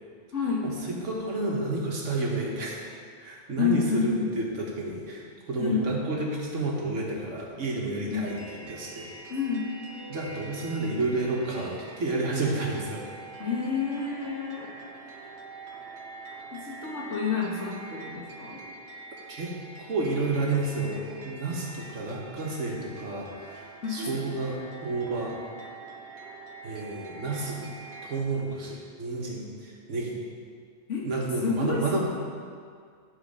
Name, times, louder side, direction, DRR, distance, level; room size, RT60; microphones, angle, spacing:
voice 1, 0.3-0.7 3.6-4.3 5.6-5.9 8.1-8.3 9.3-9.7 13.4-14.7 16.5-18.6 23.8-24.3 30.9-31.1 31.4-32.0, left 5 dB, 75° left, -4 dB, 1.8 m, -29 dB
voice 2, 1.0-2.8 3.2-5.2 5.5-8.4 8.6-9.1 10.1-13.0 19.3-19.5 19.8-23.6 23.9-25.4 26.6-27.7 28.1-30.2 31.0-32.0, right 2 dB, 90° right, -2 dB, 1.7 m, -30 dB
sound 1, 8.2-28.2, right 3 dB, 65° right, 1.3 m, -45 dB
11.0 x 4.1 x 5.4 m, 2.1 s
omnidirectional pair, 1.2 m